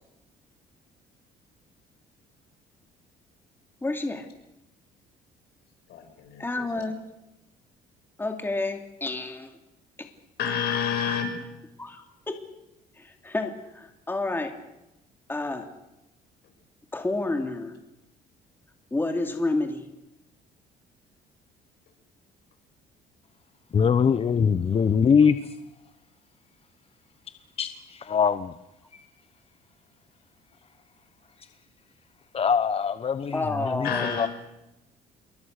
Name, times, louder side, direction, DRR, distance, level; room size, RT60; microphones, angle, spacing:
voice 1, 3.8-4.3 6.4-7.0 8.2-9.6 10.0-10.1 11.8-12.4 13.0-14.5 15.3-15.7 16.9-17.7 18.9-19.9 33.3-34.3, left 2 dB, 10° left, 5 dB, 2.8 m, -30 dB
voice 2, 5.9-6.8 10.4-11.3 33.8-34.3, left 7 dB, 70° left, 5 dB, 6.6 m, -29 dB
voice 3, 23.7-25.6 27.6-28.6 28.9-29.0 31.4-31.5 32.3-34.3, left 6 dB, 35° left, 11 dB, 1.0 m, -23 dB
27.5 x 22.5 x 6.6 m, 0.93 s
cardioid pair, 110°, 17 cm